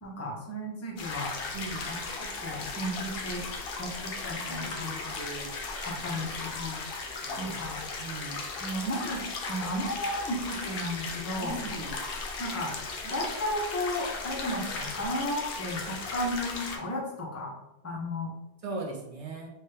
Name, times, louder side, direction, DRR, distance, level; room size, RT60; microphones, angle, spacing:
voice 1, 0.0-1.3 1.8-3.5 3.8-5.2 5.8-6.8 7.4-7.8 8.6-11.6 12.4-12.7 13.0-17.5 17.8-18.3, left 1 dB, 25° left, -2 dB, 0.3 m, -34 dB
sound 1, 1.0-16.8, left 3 dB, 60° left, 0.7 m, -37 dB
voice 2, 1.5-1.9 4.7-5.5 5.9-6.0 7.2-7.6 8.0-8.4 11.4-11.9 18.6-19.5, right 3 dB, 40° right, -1 dB, 0.5 m, -39 dB
2.9 x 2.2 x 3.3 m, 0.95 s
omnidirectional pair, 1.3 m